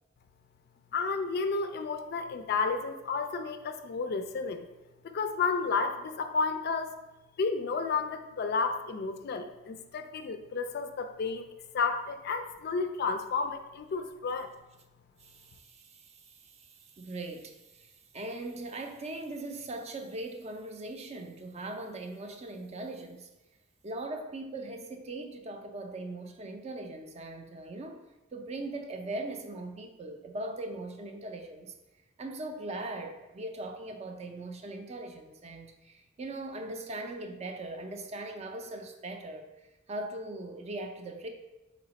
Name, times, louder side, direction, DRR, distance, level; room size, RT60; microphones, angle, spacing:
voice 1, 0.9-4.7 5.0-6.9 7.4-11.4 11.7-14.5, left 4 dB, 55° left, 8 dB, 0.4 m, -31 dB
voice 2, 15.2-23.3 23.8-28.0 28.3-31.7 32.2-39.5 39.9-41.3, right 2 dB, 35° right, 5 dB, 0.5 m, -40 dB
4.2 x 3.2 x 4.0 m, 1.0 s
head